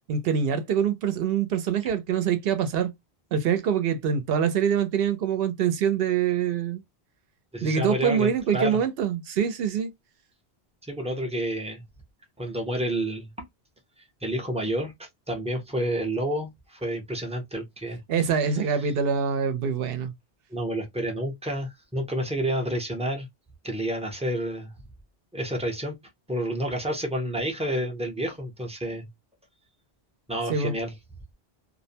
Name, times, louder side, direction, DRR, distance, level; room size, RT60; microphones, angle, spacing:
voice 1, 0.1-2.9 3.3-6.8 7.6-9.9 18.1-20.1 30.5-30.7, right 7 dB, 70° right, 0.8 m, -25 dB
voice 2, 7.5-8.8 10.8-11.8 12.4-13.5 14.2-18.0 18.7-18.9 20.5-23.3 23.6-24.7 25.3-25.9 26.3-29.1 30.3-30.9, right 1 dB, 10° right, 0.5 m, -29 dB
2.5 x 2.1 x 2.6 m
omnidirectional pair, 1.0 m